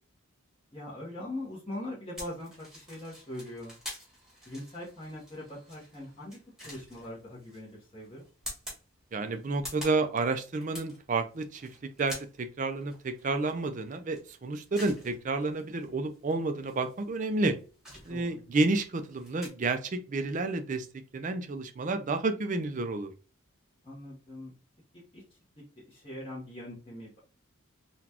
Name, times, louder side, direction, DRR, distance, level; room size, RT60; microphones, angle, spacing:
voice 1, 0.7-3.7 4.5-6.4 6.6-8.2 18.1-18.5 23.8-24.5 25.1-25.2 25.9-27.2, left 1 dB, 25° left, -7 dB, 1.0 m, -41 dB
sound 1, 2.2-19.5, equal, 5° right, 1.3 m, -48 dB
voice 2, 9.1-11.7 12.0-17.6 18.1-23.1, right 3 dB, 35° right, 8 dB, 0.4 m, -30 dB
3.9 x 2.3 x 2.8 m, 0.35 s
head